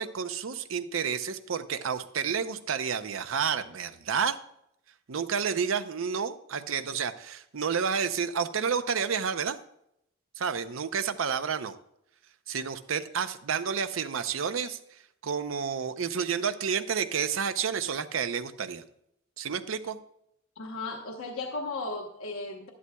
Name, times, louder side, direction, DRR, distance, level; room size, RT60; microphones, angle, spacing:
voice 1, 0.0-4.4 5.1-9.6 10.4-11.7 12.5-14.8 15.2-18.8 19.4-20.0, right 6 dB, 80° right, 11 dB, 0.6 m, -30 dB
voice 2, 20.6-22.7, left 3 dB, 85° left, 2 dB, 1.1 m, -35 dB
12.5 x 11.0 x 2.3 m, 0.77 s
head